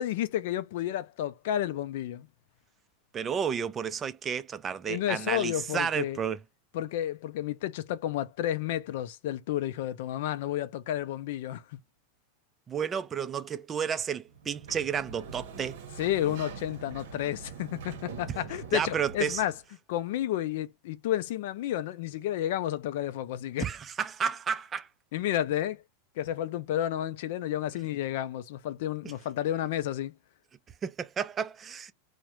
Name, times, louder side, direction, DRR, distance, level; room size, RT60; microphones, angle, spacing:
voice 1, 0.0-2.3 4.9-6.2 6.7-11.6 16.0-19.5 19.9-23.7 25.1-25.8 26.2-30.1, left 12 dB, 65° left, 0.4 m, -31 dB
voice 2, 3.1-6.4 12.7-15.8 18.7-19.4 23.6-24.9 30.8-31.9, right 7 dB, 20° right, 0.3 m, -31 dB
Sliding door, 14.3-19.6, right 5 dB, 80° right, 0.9 m, -44 dB
2.4 x 2.1 x 2.9 m
supercardioid pair, 155°, 0 cm